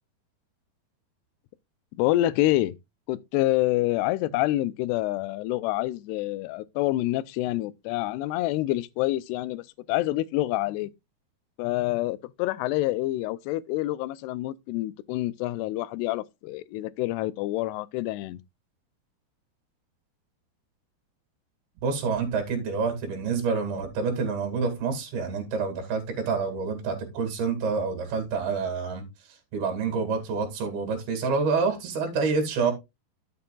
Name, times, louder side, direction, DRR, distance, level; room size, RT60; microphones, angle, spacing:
voice 1, 2.0-2.8 3.1-10.9 11.6-18.4, left 16 dB, 85° left, 2.7 m, -27 dB
voice 2, 21.8-29.0 29.5-32.7, right 5 dB, 70° right, 4.2 m, -27 dB
12.5 x 7.7 x 2.3 m
omnidirectional pair, 4.7 m